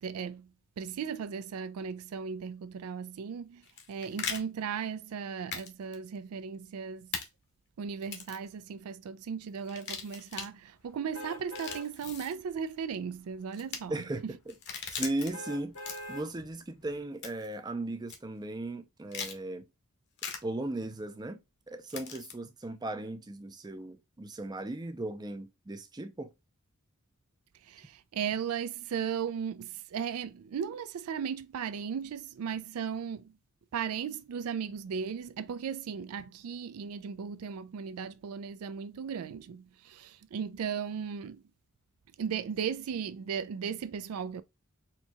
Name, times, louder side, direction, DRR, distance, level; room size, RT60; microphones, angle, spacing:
voice 1, 0.0-0.5 0.8-7.1 7.8-14.3 27.6-33.4 33.7-41.4 42.2-44.4, right 7 dB, 75° right, 0.4 m, -36 dB
sound 1, 3.6-4.4 5.5-5.7 5.9-6.0 7.1-7.2 8.0-8.4 9.6-10.5 11.4-12.3 13.5-13.8 14.5-15.3 15.7-16.2 17.2-17.5 18.1-18.2 19.1-19.4 20.2-20.4 21.9-22.3, left 6 dB, 50° left, 1.0 m, -39 dB
sound 2, 11.1-11.9 12.4-12.5 15.3-16.3 16.8-16.9, left 1 dB, 70° left, 1.2 m, -42 dB
voice 2, 13.9-14.5 14.9-15.8 16.1-19.7 20.4-21.4 21.7-26.3, right 2 dB, 20° right, 0.5 m, -37 dB
4.4 x 2.8 x 2.3 m
head